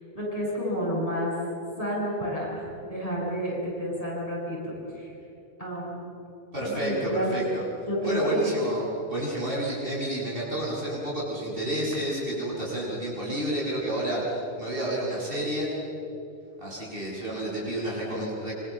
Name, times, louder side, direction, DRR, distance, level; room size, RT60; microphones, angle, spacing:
voice 1, 0.1-1.3 1.8-5.1 5.6-6.0 6.7-7.3 7.9-8.5, equal, 30° left, -5 dB, 8.2 m, -30 dB
voice 2, 6.5-7.6 8.0-15.7 16.6-18.5, right 1 dB, 50° right, -5 dB, 8.0 m, -30 dB
26.5 x 25.5 x 7.5 m, 2.9 s
omnidirectional pair, 1.2 m